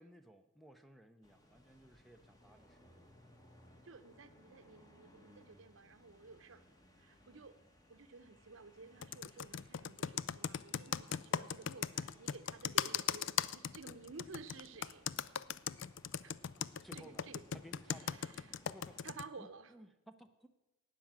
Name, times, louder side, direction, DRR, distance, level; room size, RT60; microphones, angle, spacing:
voice 1, 0.0-3.1 16.8-18.3 18.7-19.0 19.4-20.5, equal, ahead, 8 dB, 0.5 m, -58 dB
sound 1, 1.2-19.0, equal, 15° left, 1.3 m, -64 dB
voice 2, 3.8-6.7 7.0-7.6 7.9-15.1 16.2-16.4 16.9-17.4 17.9-18.6 19.0-19.7, right 4 dB, 65° right, 12 dB, 0.8 m, -54 dB
Computer keyboard, 9.0-19.2, left 8 dB, 55° left, 0.3 m, -38 dB
12.0 x 9.0 x 7.4 m, 1.0 s
head